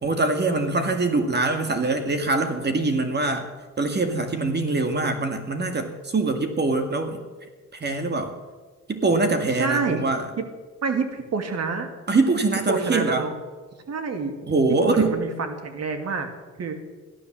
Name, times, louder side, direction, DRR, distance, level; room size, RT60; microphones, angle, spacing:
voice 1, 0.0-3.5 3.8-7.2 7.7-8.3 8.9-10.3 12.1-13.3 14.4-15.1, right 3 dB, 35° right, 6 dB, 2.0 m, -23 dB
voice 2, 9.6-10.0 10.4-10.5 10.8-11.9 12.7-13.3 13.9-14.3 14.8-16.3 16.6-16.8, right 4 dB, 55° right, 6 dB, 2.6 m, -27 dB
15.0 x 12.5 x 7.4 m, 1.3 s
cardioid pair, 90°, 30 cm